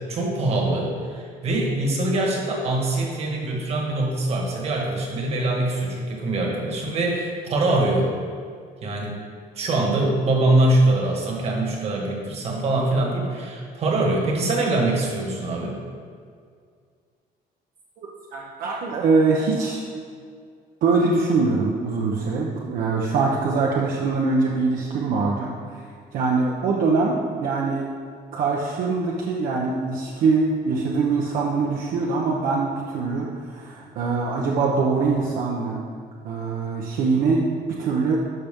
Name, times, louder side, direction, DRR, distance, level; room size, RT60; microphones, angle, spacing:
voice 1, 0.0-8.1 8.8-9.2 9.6-15.8, right 2 dB, 40° right, 0 dB, 1.6 m, -23 dB
voice 2, 18.0-19.8 20.8-25.5 26.1-27.9 28.3-35.8 36.2-38.2, right 4 dB, 60° right, -2 dB, 0.9 m, -23 dB
12.0 x 6.0 x 3.7 m, 2.1 s
cardioid pair, 180°, 16 cm